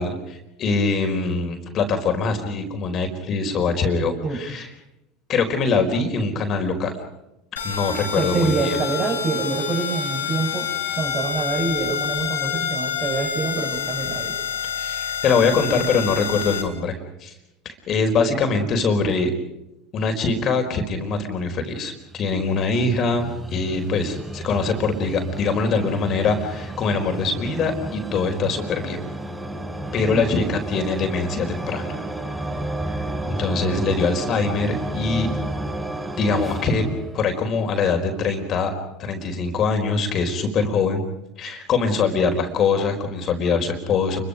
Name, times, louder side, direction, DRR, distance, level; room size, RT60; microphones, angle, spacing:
voice 1, 0.0-4.7 5.3-6.9 7.6-8.8 14.8-17.3 17.6-19.3 19.9-29.0 29.9-32.0 32.8-35.3 36.2-36.8 37.1-38.7 39.0-41.0 41.4-44.2, left 4 dB, 40° left, 5 dB, 4.5 m, -23 dB
sound 1, 7.6-16.6, left 7 dB, 80° left, 4.9 m, -28 dB
voice 2, 8.1-10.7 11.0-14.3 30.1-30.3, right 4 dB, 35° right, 3 dB, 6.8 m, -25 dB
sound 2, 21.7-37.9, right 1 dB, 5° right, 7.4 m, -32 dB
29.0 x 23.5 x 5.3 m, 0.88 s
hypercardioid pair, 75°, 0 cm